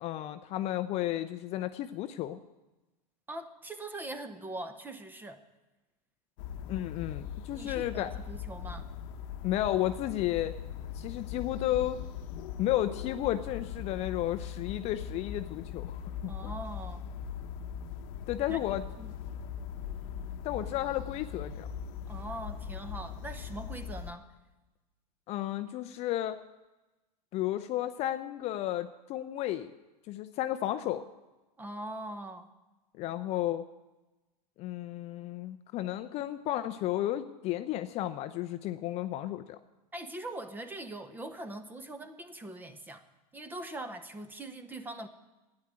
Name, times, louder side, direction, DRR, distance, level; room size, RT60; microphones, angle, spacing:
voice 1, 0.0-2.4 6.7-8.1 9.4-10.5 10.9-12.0 12.6-16.5 18.3-18.8 20.4-21.7 25.3-26.4 27.3-29.7 30.1-31.0 33.0-33.6 34.6-39.6, left 13 dB, 30° left, 10 dB, 0.5 m, -33 dB
voice 2, 3.3-5.4 7.5-8.8 16.3-17.0 18.5-18.6 19.0-19.1 22.1-24.3 31.6-32.5 39.9-43.0 43.3-45.1, right 1 dB, 10° right, 10 dB, 0.9 m, -42 dB
sound 1, 6.4-24.1, left 8 dB, 50° left, 1.0 m, -40 dB
12.0 x 9.8 x 8.8 m, 1.1 s
hypercardioid pair, 135°, 20 cm